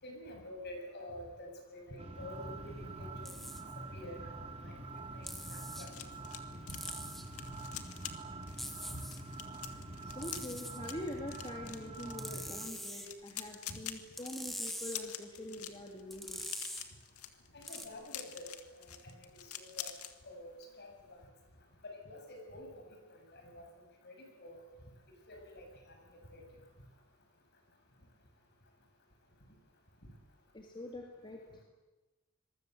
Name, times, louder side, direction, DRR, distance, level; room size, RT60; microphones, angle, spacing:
voice 1, 0.0-3.4 3.9-4.2 4.6-5.9 6.5-6.8 8.9-9.0 13.7-13.8 17.5-18.6 18.8-19.3 19.6-19.9 20.2-20.9 21.8-22.8 23.1-23.6 24.0-24.6 25.3-25.6 26.3-26.4, left 1 dB, 50° left, 3 dB, 7.1 m, -48 dB
sound 1, 2.0-12.7, right 2 dB, 30° right, 2.7 m, -46 dB
sound 2, 3.3-3.6 5.3-5.9 6.7-7.3 8.6-9.2 10.2-10.8 12.2-13.1 14.2-15.0 16.1-16.9 17.7-17.9, equal, ahead, 2.1 m, -43 dB
sound 3, 4.9-20.1 20.5-20.7 21.0-21.3, left 11 dB, 85° left, 2.1 m, -47 dB
voice 2, 10.0-16.4 30.5-31.6, left 1 dB, 20° left, 0 dB, 2.7 m, -44 dB
26.5 x 22.5 x 8.0 m, 1.1 s
head